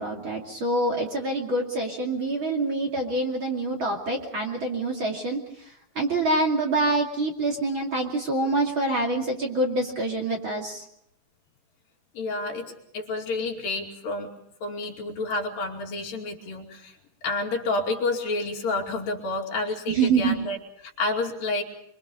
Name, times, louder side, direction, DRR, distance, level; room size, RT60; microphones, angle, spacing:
voice 1, 0.0-10.8 19.9-20.3, right 2 dB, 35° right, 0 dB, 2.9 m, -26 dB
voice 2, 12.1-14.3 14.6-17.0 17.2-20.6 20.8-21.6, left 2 dB, 70° left, 0 dB, 4.3 m, -29 dB
25.5 x 24.5 x 5.3 m, 0.71 s
omnidirectional pair, 4.2 m